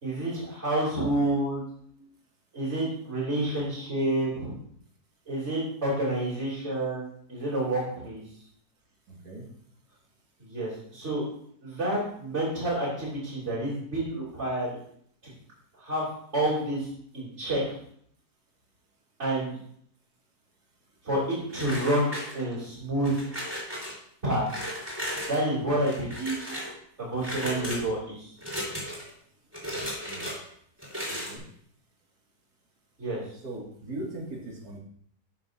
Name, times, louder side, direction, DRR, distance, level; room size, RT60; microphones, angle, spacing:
voice 1, 0.0-1.6 2.5-4.5 5.3-8.2 10.5-11.2 11.6-14.8 15.8-16.0 16.3-16.9 17.1-17.8 19.2-19.6 21.0-22.1 22.3-23.2 24.2-24.5 25.3-26.4 27.0-28.3 33.0-33.2, right 1 dB, 45° right, -9 dB, 3.4 m, -29 dB
voice 2, 9.1-9.5 30.1-30.3 31.1-31.4 33.4-34.8, right 2 dB, 75° right, -1 dB, 2.5 m, -39 dB
sound 1, 21.5-22.6 23.0-23.9 24.5-25.4 25.8-26.7 27.2-27.8 28.4-29.1 29.5-30.4 30.8-31.4, equal, 10° right, 3.8 m, -35 dB
12.0 x 7.2 x 2.6 m, 0.65 s
omnidirectional pair, 1.7 m